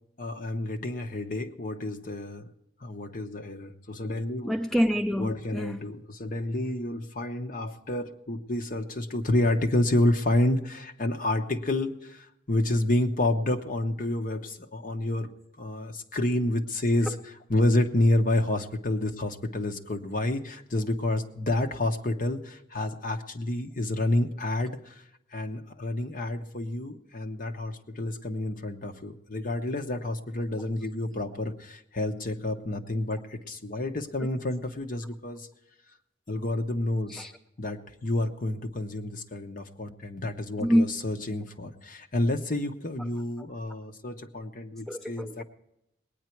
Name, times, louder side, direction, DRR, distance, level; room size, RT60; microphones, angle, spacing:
voice 1, 0.2-2.5 2.8-4.5 5.2-15.3 15.6-17.1 17.5-25.0 25.3-35.5 36.3-37.3 37.6-45.4, left 1 dB, 45° left, 5 dB, 1.0 m, -29 dB
voice 2, 4.4-5.8 17.0-17.2 34.2-34.3 37.1-37.3 40.6-40.9 44.9-45.4, equal, ahead, 5 dB, 0.4 m, -26 dB
20.0 x 9.4 x 4.5 m, 0.83 s
head